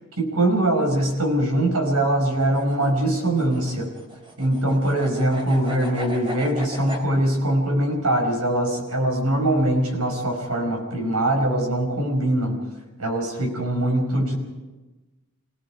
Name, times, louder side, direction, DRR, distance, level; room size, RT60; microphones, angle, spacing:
voice 1, 0.2-3.9 4.4-12.6 13.0-14.3, right 1 dB, 85° right, 3 dB, 5.6 m, -22 dB
sound 1, 2.3-7.1, right 1 dB, 25° right, 3.5 m, -37 dB
28.5 x 18.0 x 5.0 m, 1.2 s
head